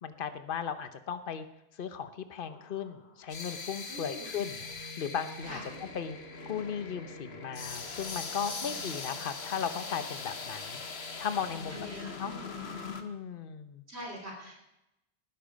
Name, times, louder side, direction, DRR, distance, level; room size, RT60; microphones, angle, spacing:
voice 1, 0.0-1.4 1.8-5.6 5.9-6.2 6.5-10.8 11.2-11.8 12.2-12.3 13.0-13.8, left 7 dB, 55° left, 10 dB, 1.1 m, -36 dB
sound 1, 2.4-13.0, left 5 dB, 70° left, 1.6 m, -41 dB
voice 2, 3.9-4.3 5.4-5.7 8.4-9.2 11.7-12.7 13.9-14.6, equal, 75° right, 0 dB, 3.7 m, -45 dB
sound 2, 4.6-11.8, right 1 dB, 50° right, 7.3 m, -51 dB
19.5 x 11.5 x 5.3 m, 0.89 s
omnidirectional pair, 1.1 m